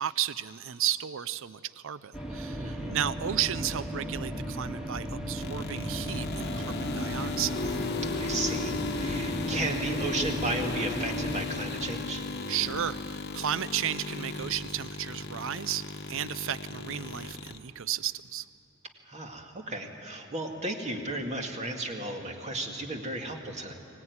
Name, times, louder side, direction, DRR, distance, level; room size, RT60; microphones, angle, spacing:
voice 1, 0.0-7.8 12.5-18.5, right 10 dB, 70° right, 16 dB, 0.5 m, -33 dB
sound 1, 2.1-11.4, equal, 5° right, 2.2 m, -36 dB
voice 2, 2.6-2.9 8.0-12.2 19.1-23.7, right 2 dB, 35° right, 2 dB, 2.2 m, -34 dB
sound 2, 5.4-17.6, left 3 dB, 50° left, 1.1 m, -35 dB
23.5 x 18.0 x 9.6 m, 2.7 s
head